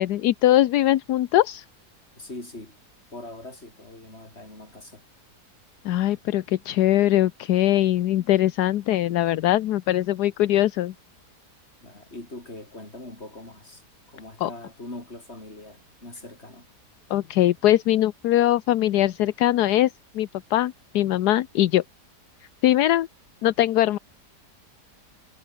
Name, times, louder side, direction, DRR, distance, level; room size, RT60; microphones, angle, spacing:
voice 1, 0.0-1.6 5.8-10.9 14.4-14.5 17.1-21.8 22.6-23.1 23.4-24.0, left 13 dB, 75° left, 1.3 m, -21 dB
voice 2, 2.2-2.8 3.1-5.0 11.8-13.8 14.1-16.7, left 2 dB, 40° left, 5.8 m, -42 dB
omnidirectional pair, 1.8 m